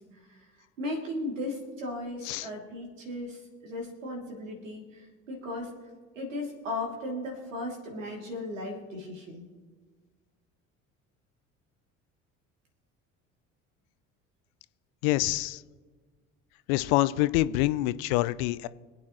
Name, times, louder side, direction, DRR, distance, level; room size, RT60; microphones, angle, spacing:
voice 1, 0.8-5.7 6.1-9.5, left 1 dB, 80° right, 0 dB, 2.9 m, -36 dB
voice 2, 15.0-15.6 16.7-18.7, left 17 dB, 60° left, 17 dB, 0.6 m, -26 dB
25.5 x 8.8 x 3.1 m, 1.5 s
figure-of-eight pair, 60°, 38 cm